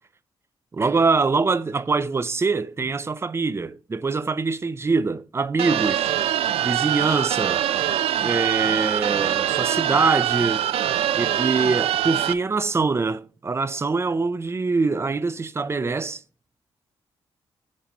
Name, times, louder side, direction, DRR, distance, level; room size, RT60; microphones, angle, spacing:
voice 1, 0.7-6.1 6.6-7.7 8.2-10.6 11.1-16.2, right 4 dB, 25° right, 0.6 m, -24 dB
sound 1, 5.6-12.3, right 11 dB, 85° right, 0.5 m, -23 dB
7.6 x 4.2 x 5.2 m
cardioid pair, 85°, 10 cm